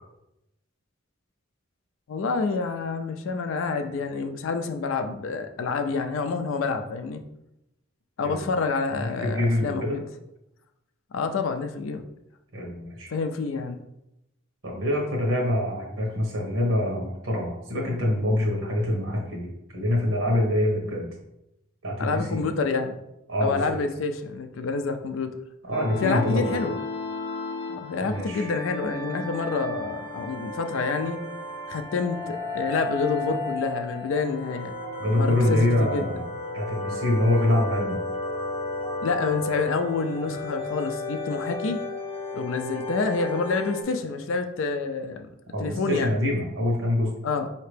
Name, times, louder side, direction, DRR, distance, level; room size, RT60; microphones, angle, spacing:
voice 1, 2.1-7.2 8.2-10.0 11.1-12.0 13.1-13.8 22.0-23.0 23.4-25.3 26.0-26.8 27.7-31.2 31.7-34.8 35.1-36.1 39.0-41.8 42.3-45.3 45.6-46.1 47.2-47.5, left 4 dB, 75° left, 7 dB, 0.4 m, -28 dB
voice 2, 8.9-10.0 12.5-13.1 14.6-21.1 21.8-22.4 23.3-23.8 25.7-26.6 28.1-28.5 35.0-36.2 36.5-38.0 45.5-47.1, left 1 dB, 90° right, -1 dB, 1.2 m, -25 dB
sound 1, 25.7-43.8, left 2 dB, 25° left, 0.6 m, -33 dB
4.3 x 2.8 x 3.3 m, 0.87 s
head